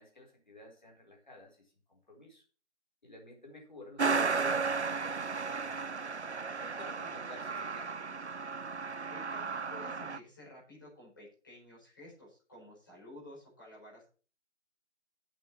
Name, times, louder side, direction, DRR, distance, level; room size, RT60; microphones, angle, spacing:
voice 1, 0.0-2.4 3.0-5.8 6.5-8.0, left 2 dB, 40° left, 0 dB, 4.2 m, -53 dB
Truck, 4.0-10.2, right 4 dB, 65° right, 0.8 m, -34 dB
voice 2, 9.1-14.0, left 1 dB, 15° left, -6 dB, 4.8 m, -52 dB
8.4 x 7.1 x 7.4 m, 0.38 s
figure-of-eight pair, 175°, 36 cm